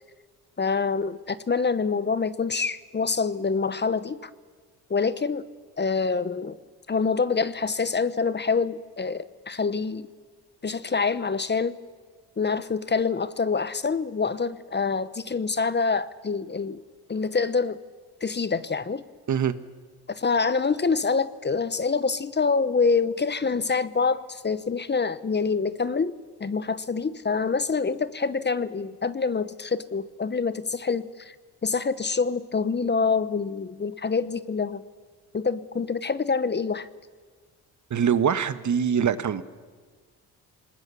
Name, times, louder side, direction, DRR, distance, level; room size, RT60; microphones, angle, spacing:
voice 1, 0.6-4.3 4.9-5.4 5.8-6.6 6.9-10.1 10.6-11.8 12.4-16.8 17.1-17.8 18.2-19.0 20.1-31.3 31.6-34.8 35.3-36.9, left 4 dB, 25° left, 15 dB, 1.0 m, -26 dB
voice 2, 37.9-39.4, right 7 dB, 50° right, 13 dB, 1.4 m, -23 dB
27.0 x 20.0 x 7.0 m, 1.5 s
supercardioid pair, 70°, 38 cm